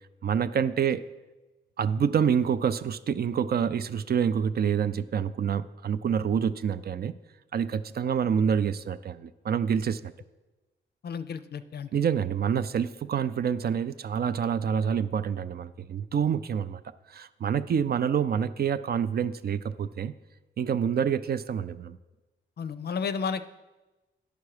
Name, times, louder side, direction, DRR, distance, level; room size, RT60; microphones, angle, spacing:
voice 1, 0.2-1.0 1.8-7.1 7.5-10.1 11.9-16.8 17.1-20.1 20.6-22.0, right 7 dB, 50° right, 13 dB, 0.4 m, -27 dB
voice 2, 11.0-11.9 22.6-23.5, left 6 dB, 50° left, 12 dB, 0.5 m, -32 dB
9.4 x 5.8 x 4.9 m, 1.1 s
cardioid pair, 80°, 21 cm